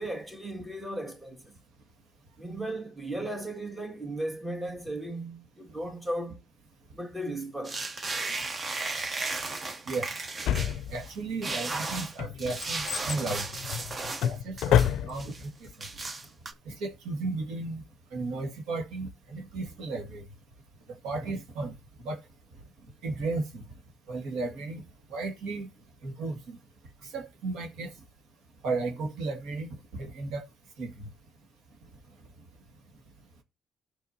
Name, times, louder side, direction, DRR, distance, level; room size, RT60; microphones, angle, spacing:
voice 1, 0.0-1.5 2.4-6.5 6.9-7.8, right 1 dB, 15° right, 2.3 m, -36 dB
sound 1, 7.6-11.1 11.4-14.3 14.6-15.5 15.8-16.5, right 3 dB, 35° right, 1.1 m, -35 dB
Drawer open or close, 10.5-11.3 11.9-15.4 15.7-15.8, left 10 dB, 85° left, 0.4 m, -28 dB
voice 2, 10.9-13.5 14.2-14.8 15.0-15.5 16.7-17.8 18.1-20.2 21.0-21.7 22.0-22.2 23.0-23.7 24.1-24.8 25.1-25.7 26.0-26.6 27.1-27.9 28.6-30.4 30.8-31.1, right 3 dB, 90° right, 2.0 m, -34 dB
18.0 x 6.3 x 2.8 m
cardioid pair, 90°, 0 cm